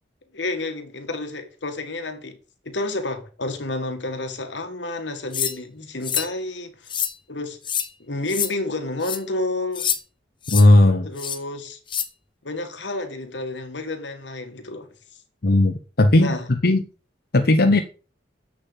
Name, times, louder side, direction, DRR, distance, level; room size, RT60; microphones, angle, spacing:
voice 1, 0.3-2.4 2.7-6.9 7.3-7.6 8.0-9.9 11.1-11.8 12.4-14.9 16.2-16.5, left 2 dB, 80° left, 1.9 m, -30 dB
sound 1, 5.3-5.6 6.0-6.3 6.9-7.1 7.6-7.9 8.3-8.5 9.0-9.2 9.8-10.0 10.4-10.7 11.2-11.4 11.9-12.1, left 8 dB, 25° left, 0.9 m, -26 dB
voice 2, 10.5-11.1 15.4-16.3 16.6-16.8 17.3-17.8, left 1 dB, 55° left, 0.9 m, -16 dB
7.8 x 6.8 x 7.3 m
head